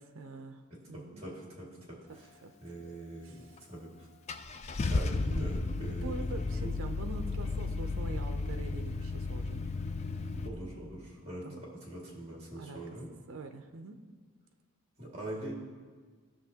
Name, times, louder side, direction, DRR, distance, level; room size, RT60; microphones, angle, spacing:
voice 1, 0.0-1.2 1.7-2.5 3.2-3.6 5.8-9.6 11.4-11.6 12.6-12.8 13.3-14.0, right 3 dB, 70° right, 6 dB, 0.5 m, -44 dB
voice 2, 0.9-2.3 2.6-3.4 3.7-4.1 4.9-6.2 6.6-6.7 10.4-11.5 11.7-13.1 15.0-15.5, right 1 dB, 30° right, -3 dB, 2.0 m, -43 dB
Car / Engine starting, 3.6-3.7 4.3-10.5, left 3 dB, 30° left, 0.3 m, -33 dB
15.5 x 6.2 x 2.8 m, 1.5 s
head